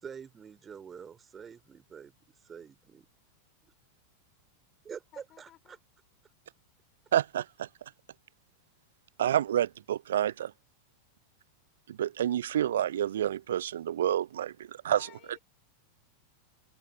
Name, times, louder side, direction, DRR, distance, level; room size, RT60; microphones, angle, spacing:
voice 1, 0.0-2.1 2.5-3.1 3.6-3.7 4.8-5.8, right 7 dB, 20° right, 4.9 m, -46 dB
voice 2, 5.1-5.8 14.4-15.4, left 14 dB, 35° left, 6.6 m, -57 dB
voice 3, 7.1-7.7 9.2-10.5 11.9-15.1, right 11 dB, 60° right, 0.5 m, -29 dB
figure-of-eight pair, 90°, 0 cm